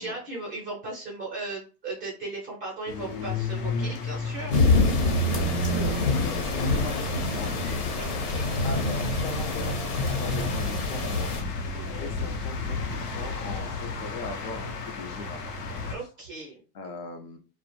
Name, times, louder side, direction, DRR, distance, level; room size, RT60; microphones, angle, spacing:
voice 1, 0.0-4.5 8.0-8.5 11.7-12.1 15.9-16.6, right 3 dB, 20° right, -4 dB, 0.5 m, -37 dB
sound 1, 2.9-15.9, left 1 dB, 90° left, 0.7 m, -32 dB
sound 2, 4.5-11.4, left 3 dB, 70° left, 1.1 m, -26 dB
voice 2, 5.2-7.5 8.6-11.4 12.0-15.4 16.7-17.4, left 2 dB, 45° left, 5 dB, 0.5 m, -39 dB
2.4 x 2.0 x 2.9 m, 0.36 s
supercardioid pair, 150°, 45 cm